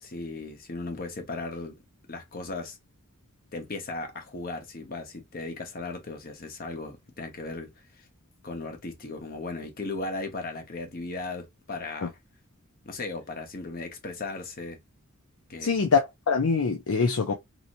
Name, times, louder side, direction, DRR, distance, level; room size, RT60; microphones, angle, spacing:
voice 1, 0.0-1.7 2.1-2.8 3.5-7.7 8.4-12.2 12.8-14.8 15.5-15.9, left 3 dB, 45° left, 0.9 m, -36 dB
voice 2, 15.6-17.3, left 5 dB, 90° left, 0.6 m, -24 dB
3.0 x 2.9 x 2.6 m
head